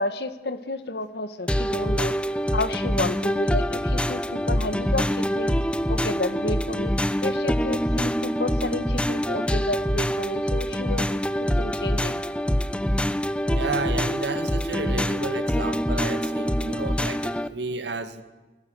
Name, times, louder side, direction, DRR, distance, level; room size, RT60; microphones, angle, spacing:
voice 1, 0.0-2.1 2.5-5.5 5.9-6.9 7.2-11.1 11.4-12.2, left 2 dB, 70° left, 11 dB, 1.8 m, -31 dB
sound 1, 1.5-17.5, equal, 5° left, 0.8 m, -25 dB
sound 2, 3.0-12.3, equal, 20° right, 7.5 m, -52 dB
voice 2, 13.4-18.2, right 3 dB, 80° right, 9 dB, 2.1 m, -32 dB
29.5 x 22.0 x 6.5 m, 1.2 s
head